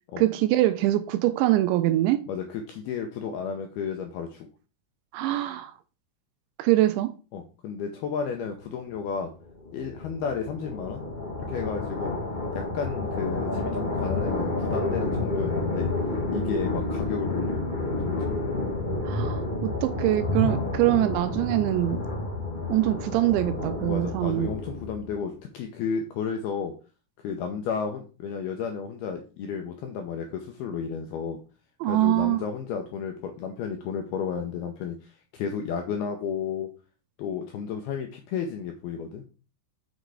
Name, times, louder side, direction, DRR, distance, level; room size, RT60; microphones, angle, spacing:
voice 1, 0.2-2.2 5.1-5.7 6.6-7.1 19.0-22.0 22.7-24.5 31.8-32.4, right 15 dB, 80° right, 2.8 m, -24 dB
voice 2, 2.3-4.5 7.3-9.3 9.7-11.0 11.5-12.2 12.5-15.9 16.3-17.6 18.1-18.4 23.9-26.7 27.2-31.4 31.9-36.7 37.2-39.2, left 6 dB, 85° left, 2.3 m, -32 dB
sound 1, 9.3-25.2, left 2 dB, 55° left, 0.5 m, -30 dB
sound 2, 18.5-24.6, equal, 5° left, 1.5 m, -36 dB
6.7 x 6.3 x 4.7 m
omnidirectional pair, 5.5 m